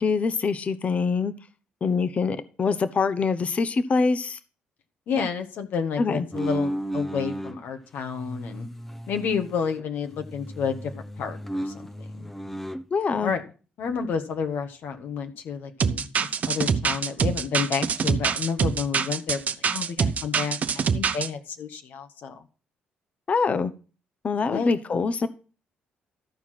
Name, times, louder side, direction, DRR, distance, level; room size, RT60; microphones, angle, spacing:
voice 1, 0.0-1.3 1.8-4.4 6.0-6.3 12.9-13.3 23.3-23.7 24.2-25.3, left 4 dB, 40° left, 13 dB, 0.9 m, -24 dB
voice 2, 5.1-8.7 9.1-10.9 11.2-12.3 13.2-13.4 13.8-16.1 16.5-22.4 24.5-24.7, left 6 dB, 75° left, 6 dB, 1.4 m, -30 dB
sound 1, 6.3-7.6 8.1-9.8 10.1-12.8, right 1 dB, 5° left, 0.7 m, -33 dB
sound 2, 15.8-21.3, right 6 dB, 50° right, 0.7 m, -25 dB
13.5 x 4.7 x 5.9 m, 0.35 s
cardioid pair, 85°, 3 cm